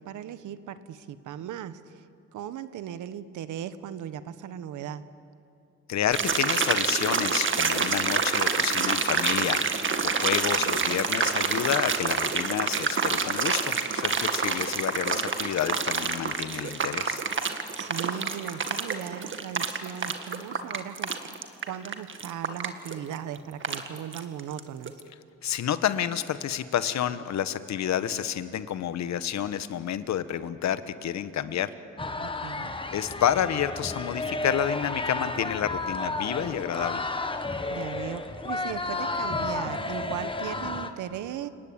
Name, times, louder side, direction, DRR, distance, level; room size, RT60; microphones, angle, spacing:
voice 1, 0.0-2.0 2.3-5.0 17.7-21.1 21.6-25.0 32.2-32.7 37.7-41.5, right 10 dB, 80° right, 13 dB, 1.3 m, -37 dB
voice 2, 5.9-9.6 10.0-17.2 25.4-31.7 32.9-37.0, left 10 dB, 65° left, 13 dB, 1.3 m, -29 dB
sound 1, 6.1-24.6 24.9-25.0, right 5 dB, 40° right, 2.0 m, -27 dB
sound 2, 32.0-40.9, left 2 dB, 15° left, 1.6 m, -32 dB
30.0 x 18.0 x 8.9 m, 2.6 s
cardioid pair, 90°, 30 cm